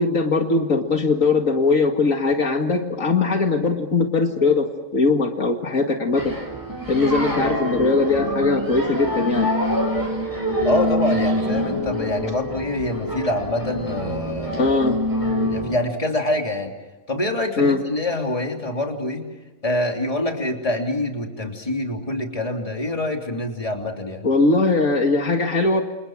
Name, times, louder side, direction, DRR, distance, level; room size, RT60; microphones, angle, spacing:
voice 1, 0.0-6.4 6.9-9.5 14.6-15.0 17.6-17.8 24.2-25.8, left 3 dB, 70° left, 4 dB, 2.5 m, -20 dB
sound 1, 6.1-15.7, equal, 15° right, 6.3 m, -25 dB
voice 2, 10.6-14.7 15.4-16.7 17.1-19.3 19.6-24.3, left 1 dB, 25° left, 2 dB, 3.2 m, -25 dB
28.5 x 28.5 x 6.3 m, 1.2 s
omnidirectional pair, 1.4 m